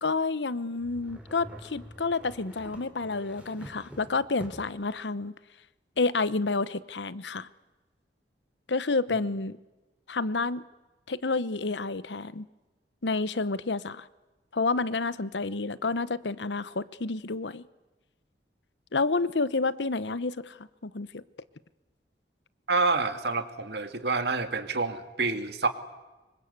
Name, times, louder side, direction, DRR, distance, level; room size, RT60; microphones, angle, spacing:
voice 1, 0.0-5.3 6.0-7.5 8.7-9.6 10.1-10.6 11.1-12.5 13.0-14.1 14.5-17.6 18.9-20.6 20.8-21.2, left 3 dB, 90° left, 0.9 m, -29 dB
sound 1, 0.8-4.9, equal, 5° right, 3.9 m, -47 dB
voice 2, 22.7-25.7, right 3 dB, 70° right, 2.1 m, -28 dB
26.0 x 23.5 x 8.2 m
head